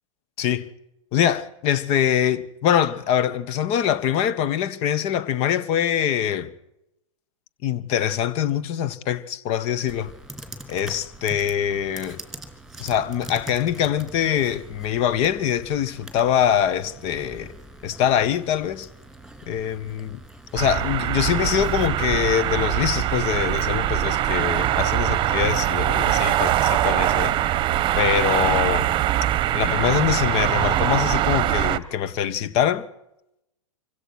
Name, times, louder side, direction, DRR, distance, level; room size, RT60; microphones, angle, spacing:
voice 1, 0.4-0.7 1.1-6.5 7.6-10.1 10.7-12.2 12.8-17.5 17.8-18.9 19.5-20.2 20.5-27.4 28.0-28.9 29.5-32.8, left 10 dB, 40° left, 1.5 m, -23 dB
Computer keyboard, 9.9-21.9, right 1 dB, ahead, 3.2 m, -43 dB
Moscow heavy traffic with some garbage man in background, 20.6-31.8, right 13 dB, 30° right, 1.2 m, -22 dB
26.0 x 16.5 x 6.2 m
hypercardioid pair, 120°, 17 cm